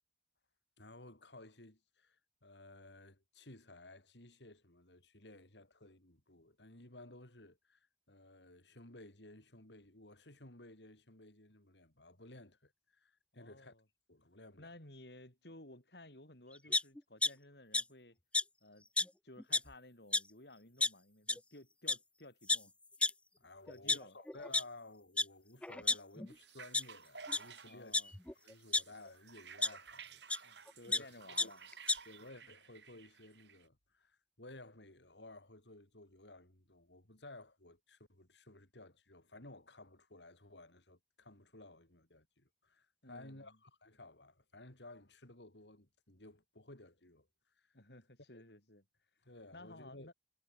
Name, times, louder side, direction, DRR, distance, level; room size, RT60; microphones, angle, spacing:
voice 1, 0.8-13.7 14.1-14.7 23.4-31.5 32.0-47.3 47.6-47.8 48.3-48.4 49.2-50.1, left 2 dB, 85° left, 4.6 m, -56 dB
voice 2, 13.3-13.8 14.6-18.2 18.6-18.9 19.2-22.7 23.7-24.2 27.6-28.1 30.4-31.7 43.0-43.6 47.7-48.8 49.5-50.1, left 1 dB, 65° left, 7.7 m, -56 dB
sound 1, 16.7-17.3 17.7-17.8 18.3-18.4 19.0-19.1 19.4-19.7 20.1-20.2 20.8-20.9 21.3-21.4 21.9-22.0 22.5-22.6 23.0-23.1 23.7-24.6 25.2-25.3 25.6-26.3 26.7-26.8 27.3-27.4 27.9-28.8 29.6-29.7 30.3-30.4 30.7-31.0 31.4-31.5 31.7-32.0, left 2 dB, 5° left, 0.4 m, -31 dB
sound 2, 26.3-33.7, right 6 dB, 80° right, 2.5 m, -55 dB
head